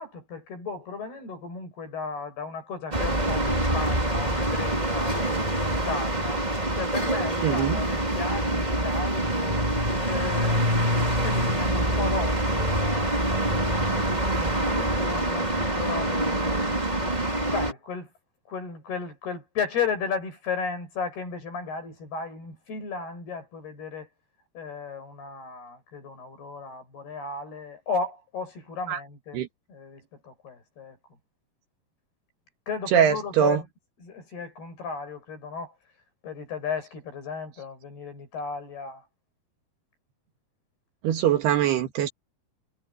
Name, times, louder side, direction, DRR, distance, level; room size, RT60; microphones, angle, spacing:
voice 1, 0.0-6.5 6.7-9.7 10.0-16.7 17.5-18.1 18.5-24.1 24.5-29.4 29.7-31.0 32.7-33.7 34.0-35.7 36.2-39.1, left 5 dB, 75° left, 9.4 m, -35 dB
sound 1, 2.9-17.7, right 1 dB, 10° right, 3.1 m, -25 dB
voice 2, 7.4-7.8 28.9-29.0 29.3-29.5 32.9-33.6 41.0-42.1, right 9 dB, 80° right, 3.8 m, -22 dB
omnidirectional pair, 4.6 m